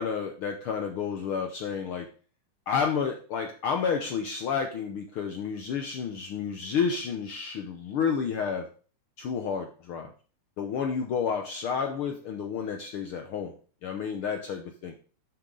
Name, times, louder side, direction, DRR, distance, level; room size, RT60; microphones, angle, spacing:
voice 1, 0.0-2.1 2.7-8.7 9.2-10.1 10.6-13.5 13.8-14.9, left 6 dB, 80° left, 4 dB, 1.2 m, -30 dB
11.5 x 7.1 x 3.9 m, 0.40 s
omnidirectional pair, 3.5 m